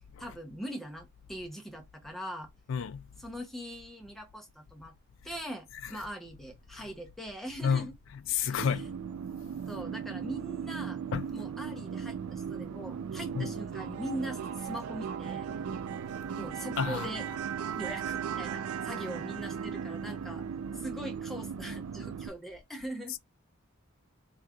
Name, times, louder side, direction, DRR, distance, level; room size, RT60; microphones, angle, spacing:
voice 1, 0.2-2.5 3.2-4.9 5.2-7.9 8.4-8.7 9.7-11.0 11.3-15.5 16.3-17.3 17.8-20.4 20.7-23.1, equal, ahead, 0.7 m, -41 dB
voice 2, 2.7-3.1 6.8-6.9 7.6-7.9 8.3-8.9 11.1-11.2 13.4-13.5 16.8-17.1, left 7 dB, 65° left, 0.3 m, -29 dB
sound 1, 8.6-22.3, right 7 dB, 85° right, 0.3 m, -37 dB
3.7 x 2.8 x 2.3 m
head